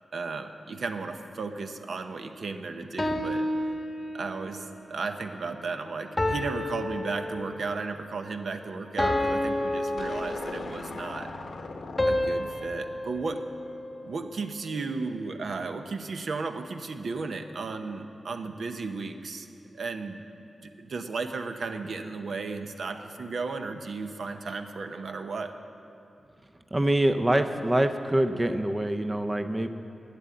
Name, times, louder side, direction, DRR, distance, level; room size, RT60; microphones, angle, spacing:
voice 1, 0.1-3.5 4.1-11.3 12.0-13.5 14.0-19.5 19.7-20.2 20.6-25.6, right 4 dB, 70° right, 7 dB, 0.7 m, -34 dB
sound 1, 3.0-4.5 6.2-7.8 9.0-10.9 12.0-14.3, left 1 dB, 20° left, 1.0 m, -30 dB
sound 2, 10.0-14.4, left 3 dB, 60° left, 0.8 m, -41 dB
voice 2, 26.7-29.7, right 1 dB, 15° right, 7 dB, 0.5 m, -25 dB
11.5 x 8.5 x 8.4 m, 2.7 s
wide cardioid pair, 135°, 0 cm